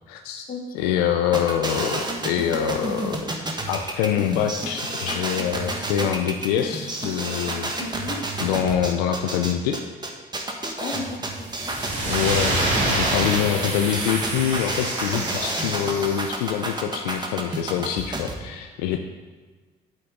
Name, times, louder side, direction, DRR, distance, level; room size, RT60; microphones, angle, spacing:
voice 1, 0.1-0.4 0.7-3.3 3.7-7.7 8.4-9.8 12.1-19.0, left 9 dB, 90° left, 5 dB, 0.5 m, -25 dB
sound 1, 1.3-18.3, right 2 dB, 20° right, 1.5 m, -30 dB
voice 2, 7.8-8.2 10.8-11.7, left 4 dB, 45° left, 4 dB, 1.4 m, -34 dB
sound 2, 11.5-16.4, right 2 dB, 65° right, 2.3 m, -27 dB
8.6 x 8.1 x 3.8 m, 1.4 s
hypercardioid pair, 60°, 20 cm